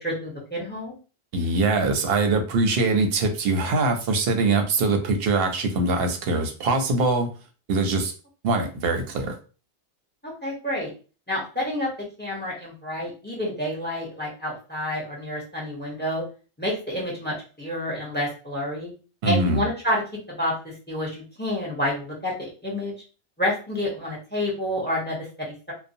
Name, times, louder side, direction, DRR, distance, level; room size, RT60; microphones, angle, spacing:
voice 1, 0.0-0.9 10.2-10.9 11.3-16.2 16.6-18.9 19.2-20.0 20.4-20.6 20.9-22.9 23.4-25.7, left 1 dB, 10° left, -3 dB, 0.7 m, -29 dB
voice 2, 1.3-7.3 7.7-8.1 8.4-9.3 19.2-19.6, right 3 dB, 65° right, 5 dB, 0.7 m, -23 dB
2.6 x 2.1 x 2.6 m, 0.35 s
omnidirectional pair, 1.2 m